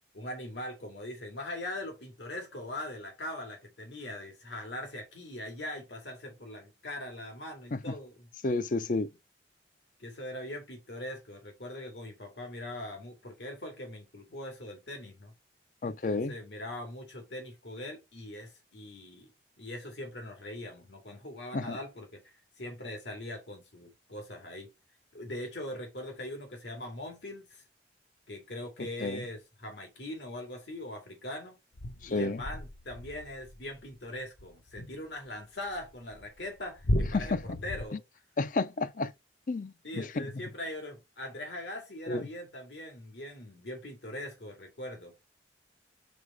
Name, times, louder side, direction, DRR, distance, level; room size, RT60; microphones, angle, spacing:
voice 1, 0.1-8.3 10.0-15.3 15.8-19.3 19.6-22.2 22.6-24.7 25.1-27.6 28.3-31.6 32.1-38.0 39.8-45.1, left 1 dB, 80° left, 2.3 m, -41 dB
voice 2, 8.4-9.1 15.8-16.3 21.5-21.8 28.8-29.2 32.0-32.4 37.1-37.6 37.9-38.0 38.4-39.1 39.5-40.4 42.1-42.3, left 3 dB, 45° left, 0.5 m, -31 dB
sound 1, 31.7-35.3 35.7-37.8, equal, 65° left, 0.9 m, -35 dB
5.2 x 4.0 x 4.9 m
head